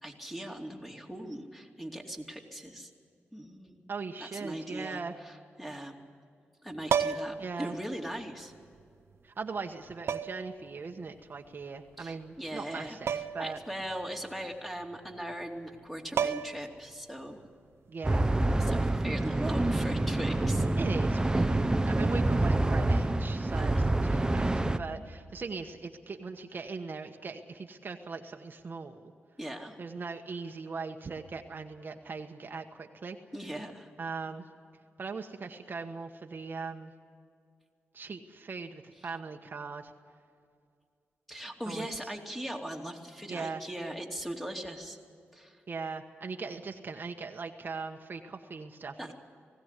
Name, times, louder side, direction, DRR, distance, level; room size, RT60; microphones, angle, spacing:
voice 1, 0.0-2.9 3.3-3.9 4.2-6.0 6.6-8.5 12.0-13.0 13.4-17.4 18.6-20.7 21.4-21.5 23.5-23.8 29.4-29.8 33.3-33.9 41.3-45.0 45.3-45.6 49.0-49.1, right 1 dB, 5° left, 1 dB, 2.7 m, -39 dB
voice 2, 3.9-5.1 7.4-7.8 9.2-13.6 17.9-18.3 19.2-19.7 20.7-29.1 29.8-33.2 34.0-34.5 35.0-36.9 37.9-39.9 41.7-41.9 43.3-43.6 45.7-49.1, right 4 dB, 50° right, 4 dB, 1.2 m, -39 dB
sound 1, 6.9-7.5 8.8-8.9 10.1-10.5 13.1-13.5 13.8-13.9 15.7-15.8 16.2-16.7 18.7-18.9, right 7 dB, 75° right, 0.7 m, -30 dB
sound 2, 18.0-24.8, right 2 dB, 15° right, 0.9 m, -27 dB
19.5 x 16.5 x 8.3 m, 2.3 s
cardioid pair, 70°, 4 cm